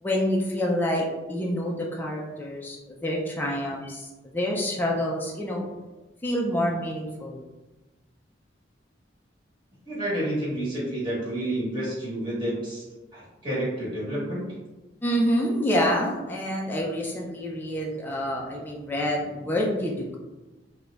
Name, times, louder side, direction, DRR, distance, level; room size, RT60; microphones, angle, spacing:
voice 1, 0.0-5.7 6.2-7.4 15.0-20.2, equal, 10° left, -2 dB, 0.4 m, -27 dB
voice 2, 9.8-12.8 13.1-14.4, right 1 dB, 25° right, -8 dB, 1.4 m, -29 dB
4.1 x 2.2 x 2.3 m, 1.1 s
head